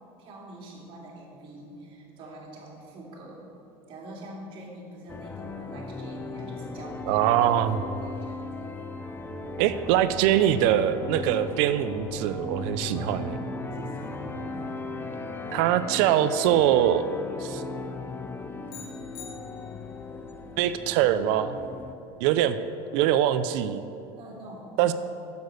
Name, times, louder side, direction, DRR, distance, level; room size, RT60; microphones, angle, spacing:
voice 1, 0.2-3.5 3.9-8.6 12.9-13.3 13.7-14.7 22.3-22.4 24.2-24.9, right 1 dB, 45° right, -2 dB, 2.5 m, -45 dB
sound 1, 5.1-21.9, left 3 dB, 15° left, 0.5 m, -37 dB
voice 2, 7.1-7.8 9.6-13.3 15.5-17.0 17.4-17.6 20.6-21.6 22.2-22.6 22.9-23.8 24.8-24.9, right 11 dB, 70° right, 12 dB, 0.5 m, -23 dB
sound 2, 12.8-16.0 16.6-16.7, right 3 dB, 10° right, 1.8 m, -44 dB
sound 3, 18.7-20.1, left 7 dB, 75° left, 1.2 m, -46 dB
8.2 x 7.0 x 6.5 m, 2.7 s
supercardioid pair, 135°, 12 cm